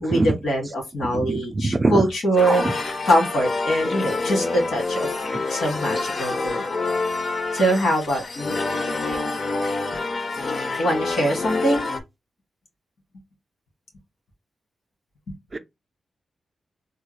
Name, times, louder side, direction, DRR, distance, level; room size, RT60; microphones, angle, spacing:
voice 1, 0.0-2.6 3.1-5.1 5.5-6.6 7.5-8.6 10.8-11.9, right 1 dB, 85° left, 1.8 m, -23 dB
voice 2, 1.1-2.0 2.5-2.7 15.5-15.6, right 3 dB, 25° right, 0.3 m, -22 dB
sound 1, 2.4-12.0, left 3 dB, 40° left, 0.5 m, -27 dB
3.5 x 2.3 x 3.1 m
wide cardioid pair, 175°, 0 cm